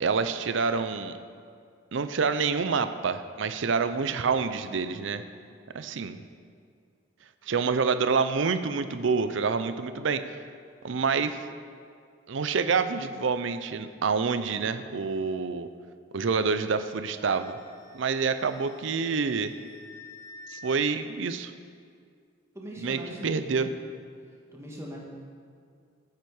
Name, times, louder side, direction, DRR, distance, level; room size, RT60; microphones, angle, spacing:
voice 1, 0.0-1.1 1.9-5.2 5.7-6.2 7.4-10.4 10.8-11.4 12.3-15.7 16.1-17.6 17.9-19.5 20.5-21.5 22.8-23.7, right 5 dB, 70° right, 10 dB, 0.5 m, -27 dB
Wind instrument woodwind instrument, 17.2-20.8, left 3 dB, 15° left, 0.5 m, -49 dB
voice 2, 22.5-23.8 24.3-25.0, equal, 15° right, -3 dB, 1.7 m, -41 dB
14.5 x 9.0 x 4.8 m, 2.2 s
head